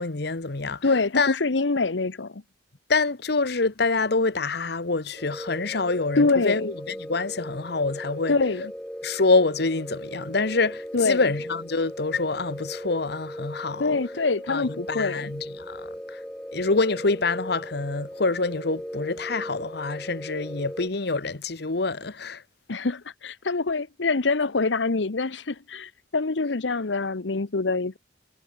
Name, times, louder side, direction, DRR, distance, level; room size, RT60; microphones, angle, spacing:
voice 1, 0.0-0.9 1.1-1.4 2.9-8.4 9.0-14.0 14.5-16.2 16.5-22.4, left 3 dB, 65° left, 1.3 m, -26 dB
voice 2, 0.8-2.4 6.2-6.7 8.3-8.7 10.9-11.2 13.8-15.3 22.7-28.0, left 3 dB, 85° left, 1.0 m, -25 dB
sound 1, 5.2-20.9, equal, 5° left, 6.7 m, -38 dB
head